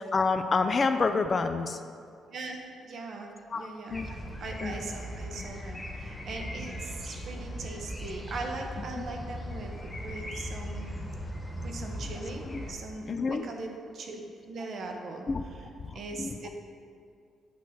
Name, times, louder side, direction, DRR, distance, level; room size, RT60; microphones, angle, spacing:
voice 1, 0.0-1.8 3.5-4.1 4.6-4.8 5.4-5.5 12.5-12.6 13.1-13.4 15.3-15.4 15.9-16.5, left 4 dB, 40° left, 7 dB, 0.3 m, -28 dB
voice 2, 2.3-10.9 11.6-14.2 14.5-15.6 15.9-16.5, right 3 dB, 60° right, 3 dB, 0.9 m, -40 dB
sound 1, 3.9-12.7, equal, 10° left, 1.2 m, -39 dB
8.6 x 3.0 x 5.7 m, 2.4 s
cardioid pair, 80°, 0 cm